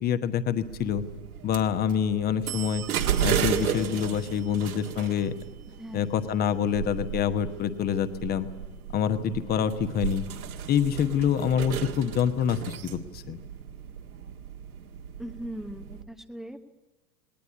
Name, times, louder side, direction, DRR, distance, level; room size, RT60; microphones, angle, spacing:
voice 1, 0.0-1.0 1.4-2.8 3.2-5.3 5.9-8.5 8.9-10.2 10.7-13.4, left 8 dB, 20° left, 11 dB, 1.1 m, -26 dB
sound 1, 0.6-16.0, right 9 dB, 60° right, 2.0 m, -34 dB
voice 2, 15.2-16.6, equal, ahead, 9 dB, 0.9 m, -39 dB
20.5 x 19.0 x 9.7 m, 1.2 s
figure-of-eight pair, 100°, 49 cm